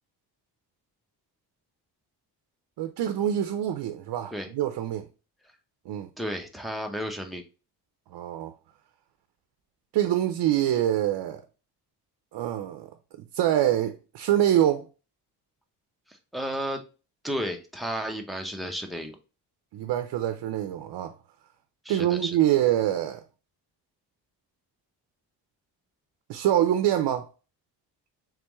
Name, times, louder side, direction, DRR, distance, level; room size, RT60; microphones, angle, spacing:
voice 1, 2.8-5.1 5.9-6.1 8.1-8.5 9.9-11.4 12.3-12.9 13.3-14.8 19.7-21.1 21.9-23.2 26.3-27.3, right 11 dB, 75° right, 0.6 m, -25 dB
voice 2, 6.2-7.4 16.1-16.8 17.2-19.2 21.8-22.4, equal, ahead, 0.7 m, -33 dB
3.6 x 3.4 x 3.0 m
cardioid pair, 105°, 41 cm